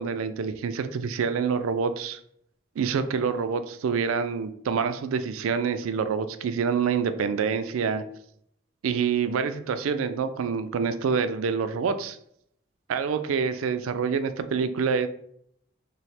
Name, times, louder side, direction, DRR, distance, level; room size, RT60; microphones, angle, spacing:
voice 1, 0.0-2.2 2.8-8.0 8.8-12.2 12.9-15.1, right 6 dB, 85° right, 10 dB, 0.4 m, -26 dB
3.1 x 2.0 x 4.1 m, 0.67 s
head